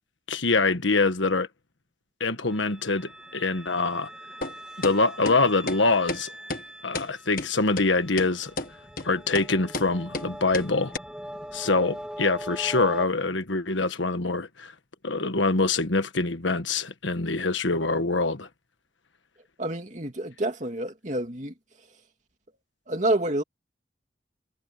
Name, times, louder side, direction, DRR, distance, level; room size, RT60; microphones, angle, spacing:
voice 1, 0.3-1.5 2.2-4.1 4.8-6.3 6.8-8.5 9.0-10.9 11.5-14.7 15.0-18.5, left 3 dB, 75° left, 1.5 m, -24 dB
sound 1, 2.5-13.1, equal, 5° right, 2.4 m, -42 dB
sound 2, 4.4-4.5 4.8-5.0 5.3-5.4 5.7-5.8 6.1-6.2 6.5-6.6 7.0-7.1 7.4-7.5 7.8-7.9 8.2-8.3 8.6-8.7 9.0-9.1 9.4-9.5 9.7-9.9 10.1-10.3 10.5-10.7 10.9-11.0, left 2 dB, 45° left, 1.6 m, -31 dB
voice 2, 19.6-21.5 22.9-23.4, right 1 dB, 40° right, 2.6 m, -28 dB
head